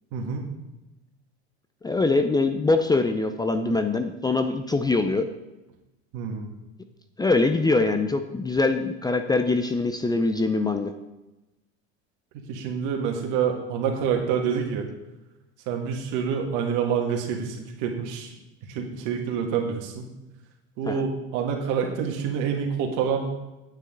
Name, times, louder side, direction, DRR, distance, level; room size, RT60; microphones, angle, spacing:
voice 1, 0.1-0.5 6.1-6.5 12.3-14.9 15.7-18.3 18.7-20.1 20.8-23.3, right 7 dB, 65° right, 2 dB, 2.1 m, -27 dB
voice 2, 1.8-5.3 7.2-10.9 20.9-21.0, left 3 dB, 10° left, 8 dB, 0.6 m, -23 dB
9.2 x 9.0 x 3.9 m, 0.99 s
supercardioid pair, 100°, 33 cm